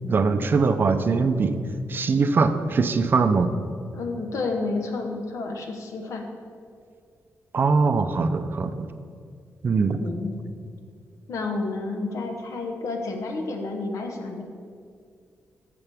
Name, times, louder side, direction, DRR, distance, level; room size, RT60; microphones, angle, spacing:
voice 1, 0.1-1.6 1.9-3.5 7.5-8.7 9.6-10.0, right 4 dB, 40° right, 9 dB, 0.5 m, -21 dB
voice 2, 3.9-6.3 10.0-10.4 11.3-14.4, left 3 dB, 75° left, 3 dB, 1.1 m, -30 dB
12.5 x 7.0 x 3.5 m, 2.2 s
wide cardioid pair, 135°, 5 cm